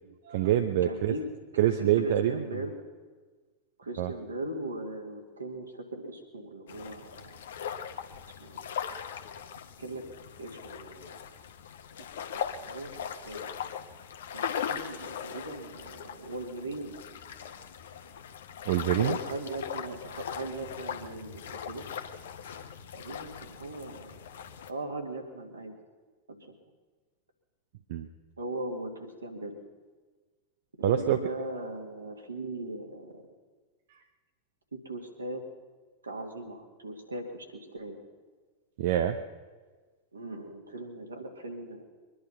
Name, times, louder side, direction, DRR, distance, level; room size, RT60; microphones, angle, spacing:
voice 1, 0.2-1.1 1.6-2.6 4.0-4.1 18.7-19.2 27.9-28.1 30.8-31.2 38.8-39.2, right 11 dB, 55° right, 7 dB, 0.7 m, -25 dB
voice 2, 0.8-1.3 1.5-2.7 3.8-7.4 8.1-8.7 9.8-10.0 10.4-11.2 12.6-13.6 14.3-17.0 19.0-21.9 22.9-24.3 24.7-25.8 26.3-26.5 28.4-29.6 30.9-33.2 34.7-35.4 36.0-38.0 40.1-41.8, right 2 dB, 75° right, 3 dB, 2.3 m, -39 dB
sound 1, 6.7-24.7, left 8 dB, 60° left, 1.0 m, -39 dB
23.0 x 11.0 x 5.7 m, 1.4 s
figure-of-eight pair, 90°, 0 cm